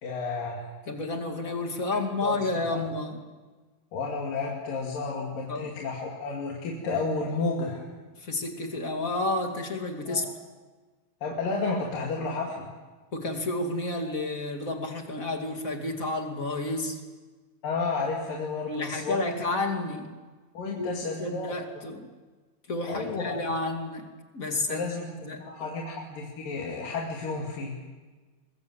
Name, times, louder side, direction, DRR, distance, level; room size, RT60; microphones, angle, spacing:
voice 1, 0.0-0.7 2.2-2.4 3.9-7.9 10.1-10.3 11.2-12.7 17.6-19.3 20.5-21.9 22.9-23.5 24.7-27.8, left 3 dB, 55° left, -2 dB, 4.0 m, -32 dB
voice 2, 0.9-3.2 5.5-5.7 8.2-10.3 13.1-17.0 18.7-20.1 20.8-20.9 21.2-22.1 22.7-24.1 24.3-24.8 25.2-25.4, left 2 dB, 30° left, 3 dB, 1.8 m, -30 dB
24.0 x 21.5 x 7.9 m, 1.3 s
omnidirectional pair, 5.0 m